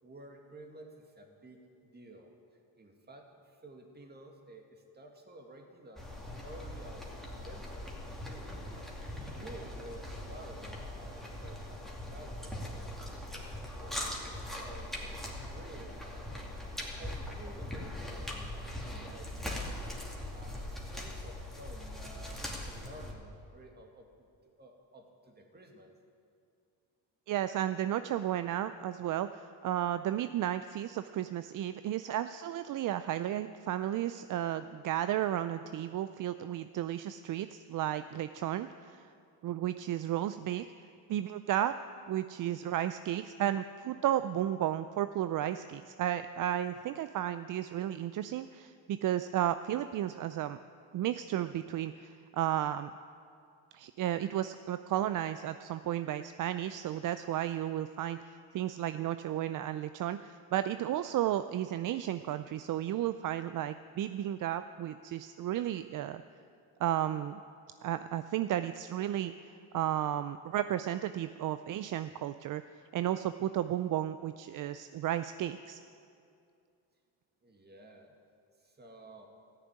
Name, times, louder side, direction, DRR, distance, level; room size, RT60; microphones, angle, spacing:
voice 1, 0.0-2.3 2.8-6.1 6.4-7.9 8.3-8.7 9.1-12.8 13.3-13.5 13.8-16.3 16.7-19.9 20.3-24.3 24.6-25.9 77.4-78.2 78.6-79.3, right 1 dB, 20° right, 2 dB, 2.1 m, -52 dB
sound 1, 6.0-23.1, left 1 dB, ahead, 2.6 m, -41 dB
voice 2, 27.3-39.1 39.4-40.7 41.1-41.7 42.1-50.6 50.9-52.9 53.7-66.2 66.8-67.4 67.8-72.6 72.9-75.8, right 12 dB, 45° right, 11 dB, 0.5 m, -33 dB
14.0 x 6.8 x 9.7 m, 2.4 s
cardioid pair, 90°, 44 cm